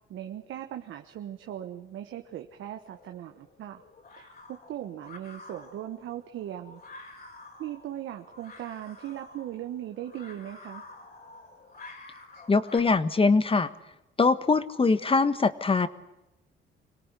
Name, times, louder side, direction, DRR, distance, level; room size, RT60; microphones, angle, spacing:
voice 1, 0.1-3.8 4.2-6.8 7.6-10.8, right 11 dB, 80° right, 5 dB, 1.4 m, -39 dB
sound 1, 2.9-12.8, left 2 dB, 50° left, 6.7 m, -50 dB
voice 2, 12.5-13.7 14.2-15.9, left 4 dB, 30° left, 14 dB, 1.4 m, -22 dB
25.5 x 18.0 x 9.9 m, 0.91 s
cardioid pair, 90°, 20 cm